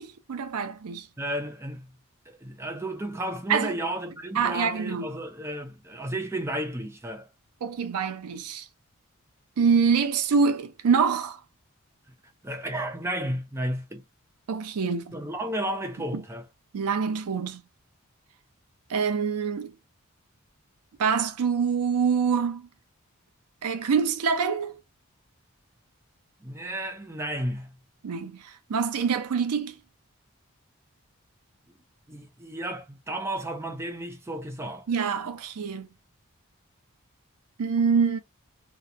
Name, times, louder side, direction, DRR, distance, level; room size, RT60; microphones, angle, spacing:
voice 1, 0.0-1.1 3.5-3.7 4.4-5.1 7.6-8.7 9.6-11.4 14.5-15.2 16.7-17.6 18.9-19.7 21.0-22.7 23.6-24.8 28.0-29.8 34.9-35.9 37.6-38.2, right 6 dB, 90° right, 0.5 m, -25 dB
voice 2, 1.2-1.9 2.3-7.3 12.4-14.0 15.1-16.5 26.4-27.7 31.7-31.8 32.1-34.9, right 1 dB, 10° right, 0.4 m, -33 dB
2.8 x 2.1 x 2.4 m
head